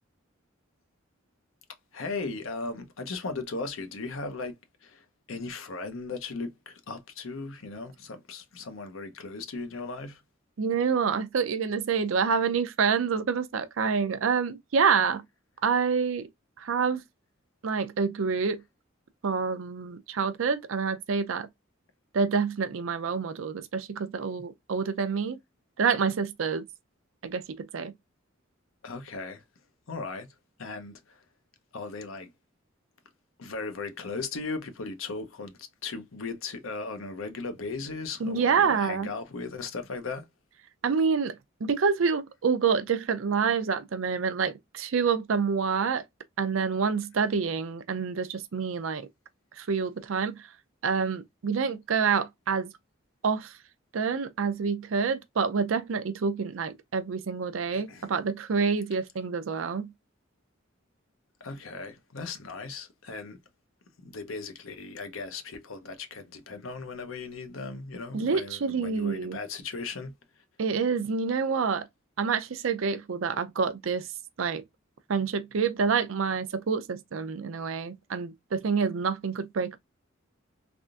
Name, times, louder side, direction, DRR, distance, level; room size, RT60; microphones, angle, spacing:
voice 1, 1.9-4.6 4.8-10.2 28.8-29.4 29.9-30.3 30.6-31.2 31.7-32.3 33.4-40.3 57.7-58.1 61.4-63.4 64.0-70.1, left 3 dB, 80° left, 0.7 m, -37 dB
voice 2, 10.6-15.2 15.6-16.3 16.6-17.0 17.6-18.6 19.2-21.5 22.1-25.4 25.8-26.6 27.2-27.9 38.2-39.1 40.8-41.4 41.6-46.0 46.4-49.1 49.6-50.5 50.8-52.7 53.2-53.6 53.9-59.9 68.1-69.4 70.6-71.9 72.2-74.1 74.4-74.6 75.1-79.8, right 5 dB, 75° right, 0.5 m, -27 dB
3.5 x 2.5 x 2.4 m
head